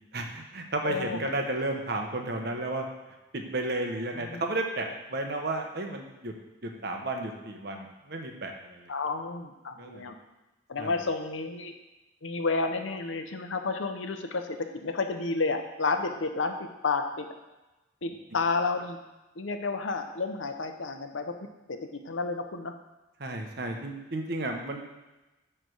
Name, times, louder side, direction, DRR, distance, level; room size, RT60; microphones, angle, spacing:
voice 1, 0.1-2.9 3.3-6.3 6.6-8.9 9.8-10.0 10.8-10.9 23.2-24.8, right 2 dB, 55° right, 3 dB, 1.0 m, -33 dB
voice 2, 0.8-1.2 4.1-4.4 8.9-10.2 10.7-11.7 12.2-17.3 18.0-19.0 19.4-21.3 21.7-22.7, left 4 dB, 85° left, 7 dB, 0.7 m, -31 dB
9.2 x 3.4 x 6.3 m, 1.0 s
head